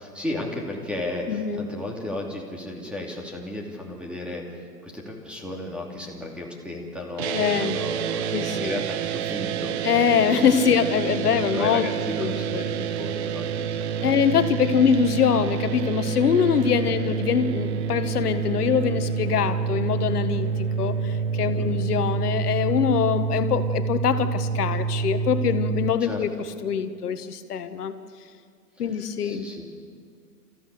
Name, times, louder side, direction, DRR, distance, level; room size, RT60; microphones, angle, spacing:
voice 1, 0.0-9.8 11.1-14.2 21.5-21.7 26.0-26.4 28.8-29.7, left 1 dB, ahead, 0 dB, 2.8 m, -34 dB
voice 2, 1.3-1.6 7.3-7.8 8.3-8.7 9.8-11.9 12.2-12.6 14.0-26.3 26.6-27.9 28.8-29.5, left 7 dB, 65° left, 10 dB, 1.7 m, -23 dB
sound 1, 7.2-25.9, right 6 dB, 40° right, 1.0 m, -28 dB
28.5 x 15.0 x 6.9 m, 2.2 s
hypercardioid pair, 130°, 49 cm